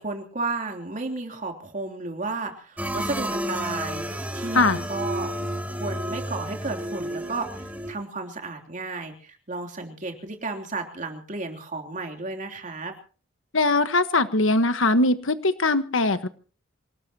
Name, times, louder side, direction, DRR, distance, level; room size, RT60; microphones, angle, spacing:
voice 1, 0.0-12.9, right 3 dB, 40° right, 3 dB, 3.2 m, -33 dB
sound 1, 2.8-7.9, equal, 10° right, 3.2 m, -31 dB
voice 2, 13.5-16.3, left 2 dB, 80° left, 11 dB, 1.4 m, -21 dB
26.5 x 18.5 x 2.9 m, 0.39 s
head